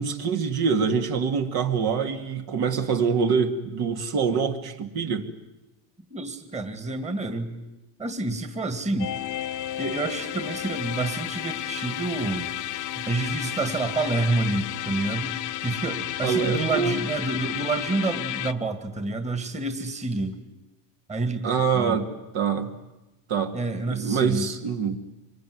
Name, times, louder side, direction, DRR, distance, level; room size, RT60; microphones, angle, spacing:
voice 1, 0.0-5.3 16.2-17.0 21.4-22.1 22.3-22.7 23.3-23.6 23.9-25.0, right 6 dB, 55° right, 5 dB, 2.5 m, -25 dB
voice 2, 6.1-7.5 8.0-9.1 9.8-12.5 13.1-20.4 21.1-22.0 23.5-24.5, right 2 dB, 15° right, 8 dB, 2.2 m, -28 dB
sound 1, 9.0-18.5, left 12 dB, 40° left, 0.9 m, -32 dB
25.0 x 22.5 x 9.6 m, 0.99 s
cardioid pair, 125°, 45 cm